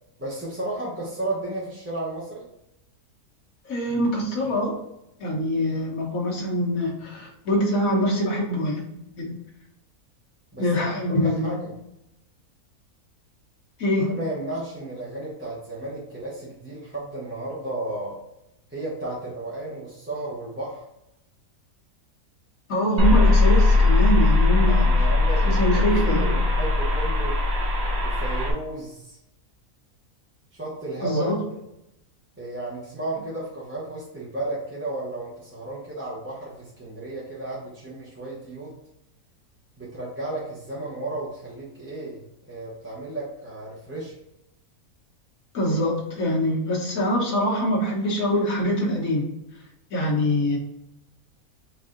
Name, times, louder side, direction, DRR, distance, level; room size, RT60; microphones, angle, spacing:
voice 1, 0.2-2.4 10.5-11.6 14.1-18.2 18.7-20.8 24.6-27.4 28.0-29.2 30.5-31.3 32.4-38.8 39.8-42.2 42.5-44.2, right 2 dB, 10° right, -7 dB, 0.8 m, -33 dB
voice 2, 3.7-4.8 5.2-9.4 10.6-11.7 13.8-14.2 22.7-24.9 25.4-26.3 31.0-31.4 45.5-49.3 49.9-50.6, equal, 70° left, -3 dB, 1.6 m, -24 dB
sound 1, 23.0-28.5, left 2 dB, 55° right, 0.9 m, -19 dB
4.8 x 2.6 x 3.7 m, 0.84 s
omnidirectional pair, 1.5 m